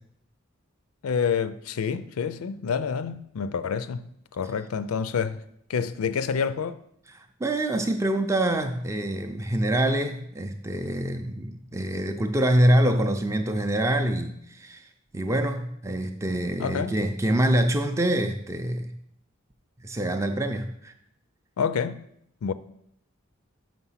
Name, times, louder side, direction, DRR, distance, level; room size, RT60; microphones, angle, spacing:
voice 1, 1.0-4.1 4.3-5.4 5.7-6.8 16.6-16.9 21.6-22.0 22.4-22.5, left 6 dB, 90° left, 0.4 m, -28 dB
voice 2, 7.1-18.9 19.8-20.9, right 1 dB, 15° right, 0.4 m, -25 dB
6.1 x 5.9 x 5.6 m
head